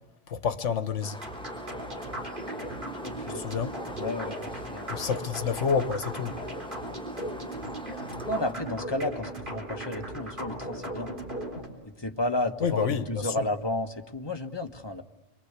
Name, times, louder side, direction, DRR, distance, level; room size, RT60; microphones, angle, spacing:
voice 1, 0.3-1.2 3.3-3.8 4.9-6.4 12.6-13.0, left 6 dB, 70° left, 1.6 m, -28 dB
sound 1, 1.0-8.5, left 1 dB, 5° left, 1.0 m, -42 dB
sound 2, 1.2-11.7, right 1 dB, 40° right, 4.2 m, -37 dB
voice 2, 3.0-3.4 4.0-5.0 8.3-11.2 12.0-15.0, left 1 dB, 20° left, 1.5 m, -32 dB
29.0 x 23.0 x 8.3 m
omnidirectional pair, 1.3 m